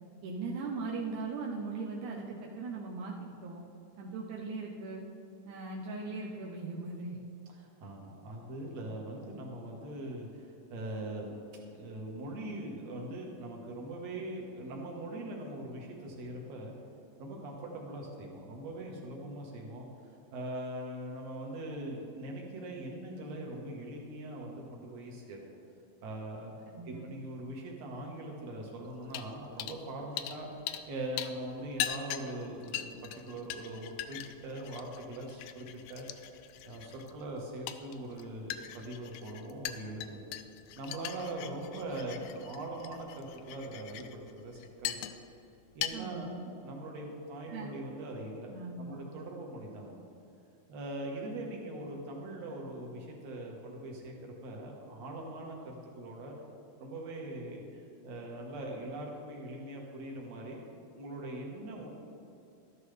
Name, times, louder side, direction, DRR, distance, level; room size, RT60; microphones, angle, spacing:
voice 1, 0.2-3.6 4.0-5.0 5.5-7.2 26.7-27.1 45.9-46.5 47.5-47.8 48.5-49.0, right 3 dB, 80° right, -2 dB, 1.8 m, -39 dB
voice 2, 7.5-11.4 11.7-16.7 17.2-19.9 20.3-25.4 26.0-26.5 26.9-30.5 30.9-36.1 36.6-40.2 40.8-45.0 45.7-46.3 46.6-50.0 50.7-56.4 56.8-60.6 60.9-61.9, right 1 dB, 55° right, -1 dB, 2.2 m, -41 dB
sound 1, 29.1-29.3 29.6-29.8 30.2-30.9 31.2-45.4 45.7-45.9, left 12 dB, 85° left, 1.9 m, -41 dB
13.0 x 11.0 x 3.3 m, 2.7 s
omnidirectional pair, 4.4 m